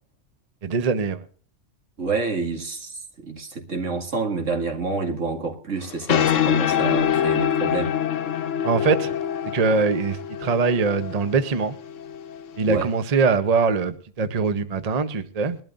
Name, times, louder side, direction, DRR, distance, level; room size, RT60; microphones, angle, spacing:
voice 1, 0.6-1.2 8.6-9.1 9.5-11.8 12.6-15.6, right 4 dB, 35° right, 0.8 m, -22 dB
voice 2, 2.0-7.9 12.7-12.9, right 4 dB, 80° right, 2.4 m, -28 dB
sound 1, 5.8-13.0, left 9 dB, 80° left, 1.1 m, -25 dB
21.0 x 12.5 x 2.5 m
omnidirectional pair, 1.3 m